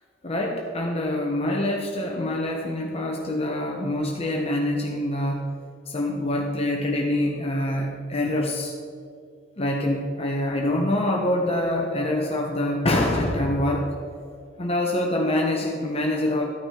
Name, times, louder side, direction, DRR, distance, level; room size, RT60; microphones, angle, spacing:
voice 1, 0.2-5.5 5.9-8.7 9.6-14.2 14.6-16.5, left 1 dB, 30° left, 0 dB, 1.2 m, -25 dB
13.5 x 9.9 x 5.1 m, 2.2 s
head